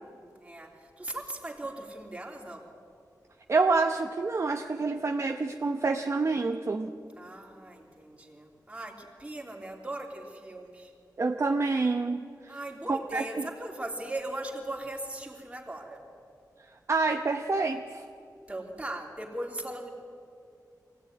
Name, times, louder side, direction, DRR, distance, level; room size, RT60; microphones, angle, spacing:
voice 1, 0.4-0.7 1.0-2.6 7.2-10.9 12.5-16.0 18.5-19.9, right 1 dB, 20° right, 0 dB, 3.1 m, -38 dB
voice 2, 3.5-6.9 11.2-12.5 12.9-13.5 16.9-18.0, right 3 dB, 45° right, 4 dB, 0.8 m, -27 dB
23.5 x 16.5 x 9.4 m, 2.4 s
wide cardioid pair, 130°, 7 cm